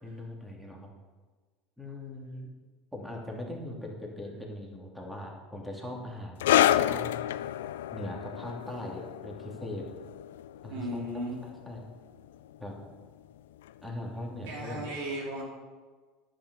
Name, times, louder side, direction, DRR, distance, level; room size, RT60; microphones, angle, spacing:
voice 1, 0.0-0.9 1.8-2.5 2.9-7.1 7.9-9.9 10.6-11.0 11.4-11.8 12.6-12.8 13.8-14.9, left 1 dB, 5° right, -1 dB, 2.9 m, -40 dB
sound 1, 6.4-13.4 13.6-13.9 14.6-14.7, left 12 dB, 85° left, 0.3 m, -30 dB
voice 2, 10.7-11.4 14.4-15.4, right 1 dB, 75° right, -2 dB, 3.8 m, -35 dB
10.5 x 9.1 x 5.5 m, 1.4 s
hypercardioid pair, 95°, 0 cm